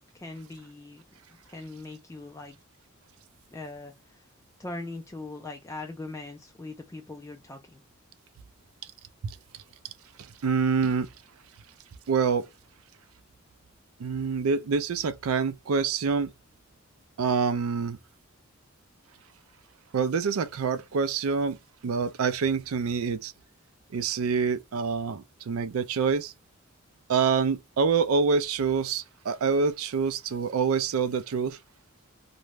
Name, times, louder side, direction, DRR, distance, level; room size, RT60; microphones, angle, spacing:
voice 1, 0.1-1.0 1.5-2.6 3.5-4.2 4.6-7.8, left 2 dB, 15° left, 0.3 m, -40 dB
voice 2, 10.4-11.1 12.1-12.5 14.0-16.3 17.2-18.0 19.9-21.6 21.8-23.3 23.9-26.3 27.1-31.6, right 5 dB, 90° right, 0.4 m, -26 dB
2.5 x 2.2 x 3.1 m
head